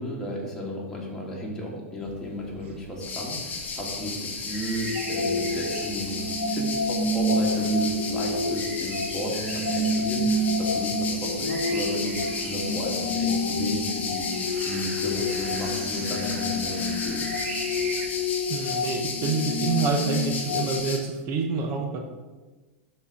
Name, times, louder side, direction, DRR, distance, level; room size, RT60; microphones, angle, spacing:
voice 1, 0.0-14.2 14.6-17.3, left 1 dB, 5° left, -5 dB, 2.4 m, -33 dB
sound 1, 2.0-18.1, right 4 dB, 60° right, 1.2 m, -42 dB
sound 2, 3.0-21.0, left 4 dB, 25° left, 1.3 m, -34 dB
sound 3, 4.9-20.8, left 2 dB, 70° left, 0.9 m, -29 dB
voice 2, 18.5-22.0, right 5 dB, 40° right, 3 dB, 0.9 m, -27 dB
12.5 x 4.3 x 3.9 m, 1.3 s
figure-of-eight pair, 95°, 7 cm